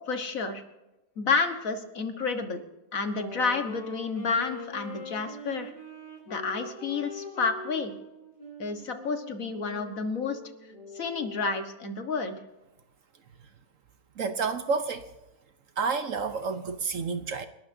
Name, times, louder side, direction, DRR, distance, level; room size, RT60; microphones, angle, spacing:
voice 1, 0.1-0.6 1.2-2.6 2.9-5.7 6.3-7.9 8.6-10.4 10.9-12.4, left 4 dB, 55° left, 1.8 m, -30 dB
Wind instrument woodwind instrument, 3.0-11.7, left 2 dB, 30° left, 6.6 m, -43 dB
voice 2, 14.2-15.1 15.8-17.5, right 5 dB, 60° right, 1.1 m, -29 dB
29.5 x 12.5 x 2.7 m
omnidirectional pair, 1.7 m